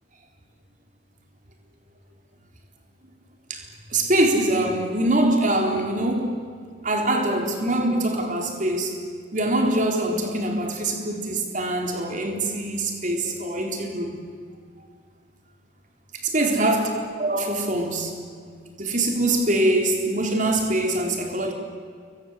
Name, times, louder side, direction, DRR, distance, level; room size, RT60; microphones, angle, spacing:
voice 1, 3.9-6.4 6.8-9.0 9.3-14.1 16.2-16.9 17.2-18.2 18.8-21.5, right 1 dB, 40° right, 3.9 m, -23 dB
29.5 x 23.0 x 8.2 m
head